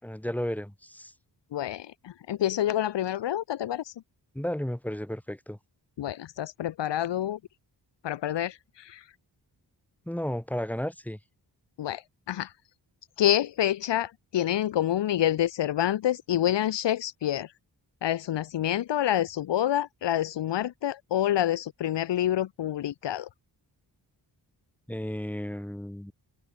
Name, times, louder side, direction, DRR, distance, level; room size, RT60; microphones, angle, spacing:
voice 1, 0.0-1.1 4.3-5.6 10.1-11.2 24.9-26.1, equal, 5° left, 5.2 m, -33 dB
voice 2, 1.5-3.9 6.0-7.4 8.0-9.0 11.8-12.0 12.3-12.5 13.2-17.5 18.0-23.3, left 12 dB, 80° left, 0.8 m, -27 dB
wide cardioid pair, 155°, 42 cm